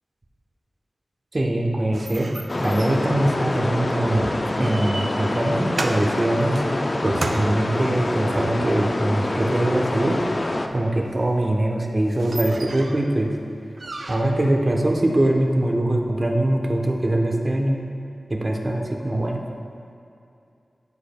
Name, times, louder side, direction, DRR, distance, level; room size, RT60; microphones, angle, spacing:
voice 1, 1.3-2.3 2.6-6.6 7.0-10.2 10.7-13.3 14.1-17.7 18.3-19.4, right 1 dB, 40° right, 0 dB, 0.9 m, -22 dB
sound 1, 1.9-9.0 11.3-11.4 11.8-11.9 12.0-13.1 13.8-14.5, right 2 dB, 60° right, 0.5 m, -34 dB
sound 2, 2.5-10.7, left 2 dB, 45° left, 0.4 m, -26 dB
14.5 x 5.0 x 2.2 m, 2.5 s
wide cardioid pair, 60°, 0 cm